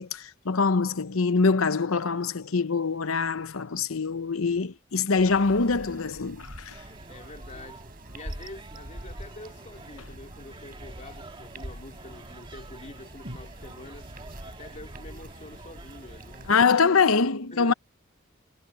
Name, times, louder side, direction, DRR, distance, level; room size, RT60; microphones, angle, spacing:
voice 1, 0.0-6.8 16.5-17.7, left 4 dB, 85° left, 0.9 m, -24 dB
sound 1, 5.2-16.5, right 1 dB, 45° right, 7.4 m, -44 dB
sound 2, 6.7-16.8, right 3 dB, 25° right, 2.0 m, -50 dB
voice 2, 7.1-7.9 8.1-14.1 14.4-16.6 17.5-17.7, left 2 dB, 35° left, 2.7 m, -46 dB
head